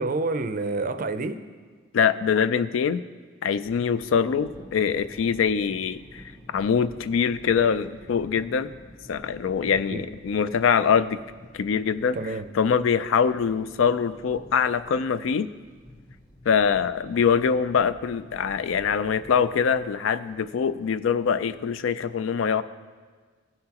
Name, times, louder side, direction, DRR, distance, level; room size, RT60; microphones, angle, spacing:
voice 1, 0.0-1.4 9.9-10.0 12.1-12.4, right 3 dB, 45° right, 10 dB, 0.4 m, -28 dB
voice 2, 1.9-3.0 3.4-6.2 6.5-8.7 9.1-11.2 11.5-15.5 16.5-22.6, left 6 dB, 75° left, 14 dB, 0.4 m, -24 dB
Thunder, 3.5-21.9, equal, 20° left, 0.9 m, -49 dB
17.0 x 5.8 x 2.9 m, 1.5 s
head